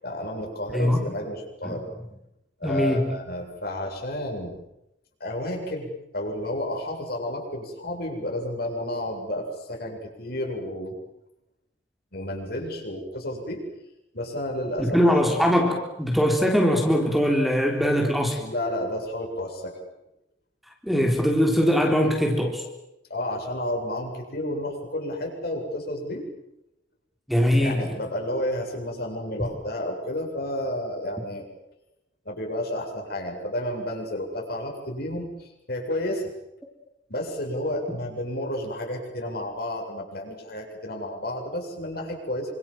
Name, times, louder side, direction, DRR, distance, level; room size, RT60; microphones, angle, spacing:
voice 1, 0.0-1.9 2.6-4.6 5.2-11.0 12.1-13.6 14.1-15.1 18.4-19.8 23.1-26.2 27.6-31.5 32.3-36.3 37.1-42.5, left 1 dB, 55° left, 1 dB, 7.7 m, -31 dB
voice 2, 0.7-1.0 1.6-1.8 2.6-3.2 14.8-18.4 20.8-22.6 27.3-27.8, equal, ahead, 1 dB, 3.7 m, -21 dB
28.0 x 26.0 x 7.6 m, 0.86 s
head